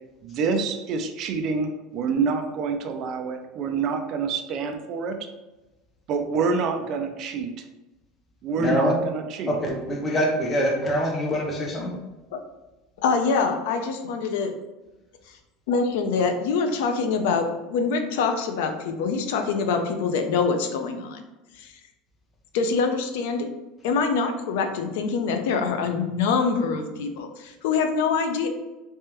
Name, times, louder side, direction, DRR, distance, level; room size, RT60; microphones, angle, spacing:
voice 1, 0.2-5.2 6.1-7.5 8.4-9.6, right 4 dB, 45° right, 6 dB, 0.4 m, -27 dB
voice 2, 8.6-9.0 9.5-11.9, equal, 20° left, 0 dB, 0.8 m, -24 dB
voice 3, 13.0-14.5 15.7-21.2 21.6-21.7 22.5-23.5 23.8-28.5, left 5 dB, 80° left, 6 dB, 0.5 m, -25 dB
3.3 x 3.3 x 3.0 m, 1.1 s
cardioid pair, 160°, 0 cm